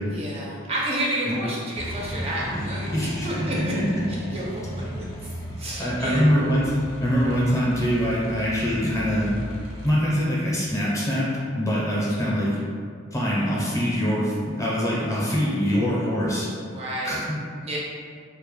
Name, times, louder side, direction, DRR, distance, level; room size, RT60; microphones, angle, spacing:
voice 1, 0.1-3.6 4.3-4.4 4.7-5.3 5.6-6.3 16.7-17.2 17.6-17.8, right 1 dB, 30° right, -5 dB, 0.4 m, -30 dB
sound 1, 1.7-9.9, equal, 90° left, 0.5 m, -35 dB
voice 2, 2.9-4.0 5.8-6.7 7.0-9.3 9.8-11.3 11.6-12.5 13.1-16.5 17.0-17.4, equal, 15° left, -6 dB, 0.5 m, -24 dB
2.1 x 2.0 x 3.0 m, 2.1 s
head